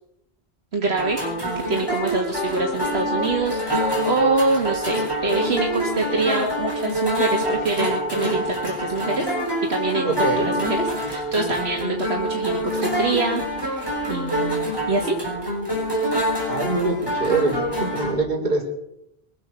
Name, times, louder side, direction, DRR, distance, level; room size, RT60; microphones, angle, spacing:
voice 1, 0.7-1.2 1.6-9.3 9.7-15.2, right 3 dB, 80° right, 0 dB, 2.1 m, -25 dB
sound 1, 1.0-18.1, equal, 20° left, 6.1 m, -26 dB
sound 2, 2.3-5.5 5.8-8.8, left 4 dB, 75° left, 3.2 m, -35 dB
voice 2, 10.0-10.5 16.5-18.6, right 3 dB, 45° right, -4 dB, 4.2 m, -24 dB
23.0 x 8.4 x 6.8 m, 0.82 s
omnidirectional pair, 1.1 m